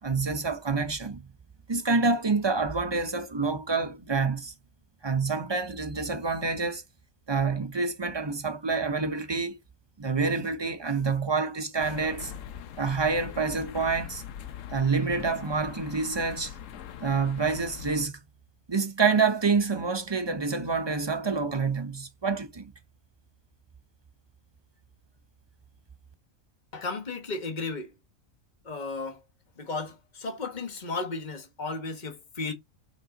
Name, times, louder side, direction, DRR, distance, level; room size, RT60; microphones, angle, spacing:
voice 1, 0.0-1.2 1.7-4.5 5.0-6.8 7.3-9.6 10.0-12.3 12.8-14.2 14.7-16.5 17.0-18.1 18.7-22.7, right 4 dB, 30° right, 0.5 m, -27 dB
sound 1, 11.8-18.1, left 9 dB, 70° left, 1.0 m, -42 dB
voice 2, 26.7-27.9 28.6-29.2 29.6-32.5, left 3 dB, 35° left, 1.6 m, -34 dB
5.4 x 5.4 x 3.9 m
omnidirectional pair, 1.4 m